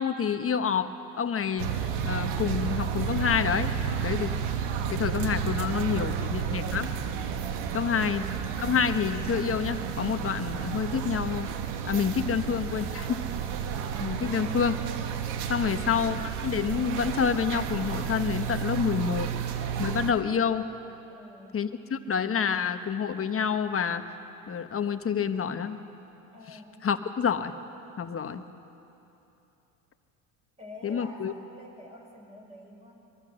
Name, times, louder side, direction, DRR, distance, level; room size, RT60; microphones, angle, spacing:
voice 1, 0.0-4.3 4.8-6.9 7.7-8.3 8.6-11.5 11.9-13.2 14.0-14.8 15.5-19.3 19.8-20.7 21.5-24.1 24.5-25.8 26.5-27.5 28.0-28.4 30.8-31.3, left 7 dB, 30° left, 9 dB, 1.3 m, -28 dB
sound 1, 1.6-20.1, right 7 dB, 70° right, 1.6 m, -31 dB
voice 2, 5.3-6.4 7.6-8.3 14.1-14.6 15.5-16.0 21.1-21.6 26.3-26.9 30.6-32.9, left 1 dB, 15° right, 0 dB, 6.5 m, -48 dB
23.5 x 23.5 x 6.4 m, 3.0 s
hypercardioid pair, 80°, 42 cm